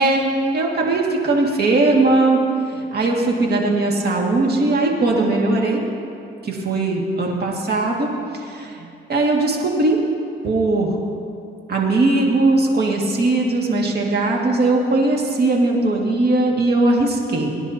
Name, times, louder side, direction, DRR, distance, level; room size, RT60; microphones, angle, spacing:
voice 1, 0.0-2.4 2.7-5.8 6.4-8.8 9.1-10.0 10.4-11.0 11.7-17.6, right 2 dB, 50° right, -1 dB, 2.2 m, -19 dB
23.5 x 10.0 x 2.9 m, 2.5 s
cardioid pair, 90°, 20 cm